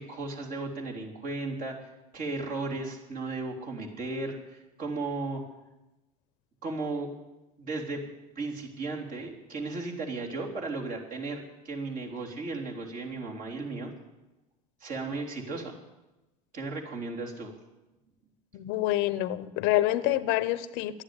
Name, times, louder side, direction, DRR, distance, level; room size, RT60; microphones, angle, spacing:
voice 1, 0.0-5.4 6.6-7.1 7.6-8.0 8.4-13.9 14.8-15.8 16.5-17.6, right 3 dB, 45° right, 3.4 m, -35 dB
voice 2, 18.5-21.0, left 15 dB, 70° left, 0.8 m, -27 dB
11.5 x 9.9 x 9.7 m
supercardioid pair, 105°, 19 cm